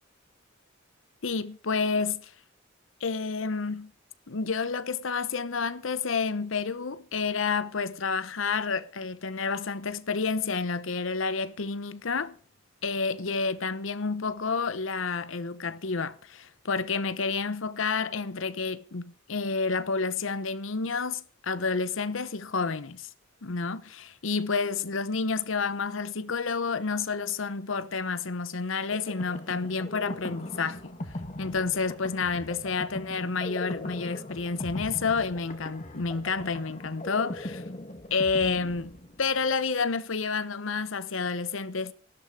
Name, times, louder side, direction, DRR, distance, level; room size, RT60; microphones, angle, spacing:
voice 1, 1.2-2.3 3.0-3.9 4.3-12.3 12.8-23.1 23.4-31.0 31.4-37.6 38.1-38.9 39.2-41.9, left 4 dB, 75° left, 0.9 m, -30 dB
sound 1, 28.9-39.4, left 1 dB, 35° left, 1.9 m, -39 dB
12.5 x 12.5 x 5.1 m
head